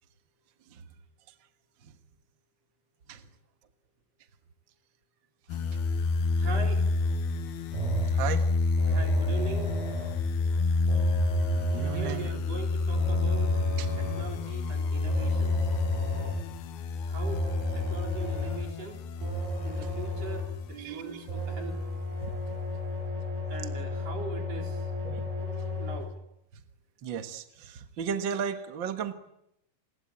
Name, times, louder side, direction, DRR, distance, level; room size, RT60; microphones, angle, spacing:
sound 1, 5.5-20.7 21.3-22.3, left 3 dB, 80° left, 3.1 m, -29 dB
voice 1, 6.4-6.8 8.9-9.8 11.9-13.6 14.0-15.7 17.1-17.4 17.7-19.0 19.6-21.8 23.5-24.9 25.8-26.1, right 4 dB, 40° right, 4 dB, 4.7 m, -41 dB
sound 2, 7.7-8.3 8.8-10.3 10.9-12.3 13.0-14.4 15.1-16.5 17.2-18.7 19.2-20.6 21.3-26.0, left 1 dB, 85° right, 9.1 m, -33 dB
voice 2, 8.1-8.4 11.6-12.3 13.8-13.9 20.7-21.3 25.0-25.3 27.0-29.1, right 7 dB, 65° right, 9 dB, 1.1 m, -35 dB
29.0 x 21.0 x 8.8 m, 0.79 s
omnidirectional pair, 4.5 m